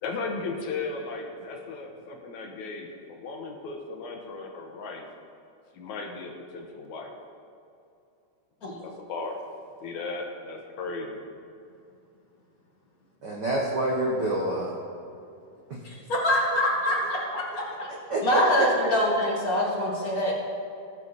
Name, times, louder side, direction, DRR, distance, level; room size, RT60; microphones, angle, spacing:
voice 1, 0.0-5.1 5.7-7.1 8.6-9.4 9.8-11.2, left 3 dB, 70° left, 2 dB, 2.2 m, -36 dB
voice 2, 13.2-14.8 15.7-15.8 18.1-18.7, right 1 dB, 85° right, -2 dB, 0.9 m, -27 dB
voice 3, 15.8-17.9 18.2-20.3, left 1 dB, 30° left, -3 dB, 1.9 m, -25 dB
19.0 x 7.4 x 4.1 m, 2.6 s
omnidirectional pair, 3.8 m